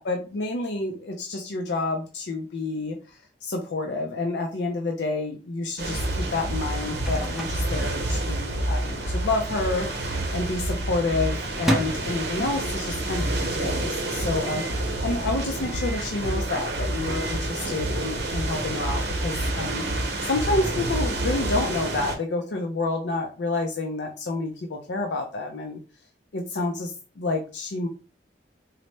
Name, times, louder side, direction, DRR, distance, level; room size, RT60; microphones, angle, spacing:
voice 1, 0.0-19.8 20.2-25.8 26.3-27.9, left 2 dB, 85° left, 2 dB, 0.5 m, -29 dB
sound 1, 5.8-22.2, right 1 dB, 80° right, 0.8 m, -28 dB
Microwave oven, 7.0-8.6 8.9-9.0 9.2-9.8 10.2-13.0 13.4-13.5 13.7-13.8 14.4-14.8 15.7-16.1 16.8-17.5, equal, ahead, 0.4 m, -33 dB
4.0 x 2.1 x 3.2 m, 0.34 s
head